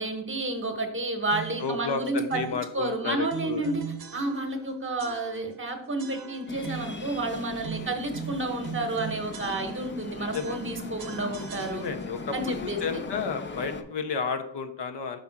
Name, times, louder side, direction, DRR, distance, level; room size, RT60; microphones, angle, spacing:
voice 1, 0.0-2.4 2.7-3.8 4.1-11.8 12.3-12.8, right 2 dB, 25° right, 5 dB, 0.9 m, -30 dB
sound 1, 1.3-1.7 2.3-2.7 3.3-4.7 5.0-5.6 6.0-7.1 7.6-10.0 10.3-12.2, right 8 dB, 55° right, 0.7 m, -40 dB
voice 2, 1.6-3.7 7.8-8.0 10.1-10.6 11.7-15.2, left 5 dB, 65° left, 7 dB, 0.7 m, -32 dB
sound 2, 6.5-13.8, left 3 dB, 25° left, 0.5 m, -39 dB
5.2 x 3.6 x 5.7 m, 0.72 s
cardioid pair, 90°, 44 cm